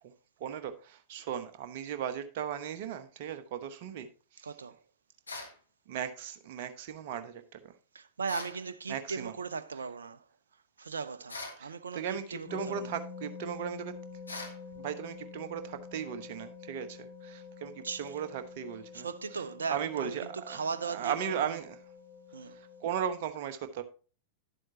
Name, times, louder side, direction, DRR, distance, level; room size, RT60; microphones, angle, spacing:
voice 1, 0.4-4.1 4.3-4.5 5.9-7.7 8.9-9.3 11.6-13.9 14.3-19.1 19.3-19.4 19.7-21.8 22.8-23.8, right 8 dB, 50° right, 1.0 m, -37 dB
voice 2, 4.4-4.8 7.9-10.2 10.8-12.9 17.8-18.1 18.9-21.5 22.3-22.6, right 5 dB, 70° right, 0.4 m, -38 dB
sound 1, 5.3-5.6 8.3-8.6 11.3-11.6 14.3-14.6, left 2 dB, 80° left, 1.4 m, -41 dB
sound 2, 12.5-23.0, left 5 dB, 35° left, 3.6 m, -48 dB
11.0 x 7.7 x 2.8 m
figure-of-eight pair, 90°, 0 cm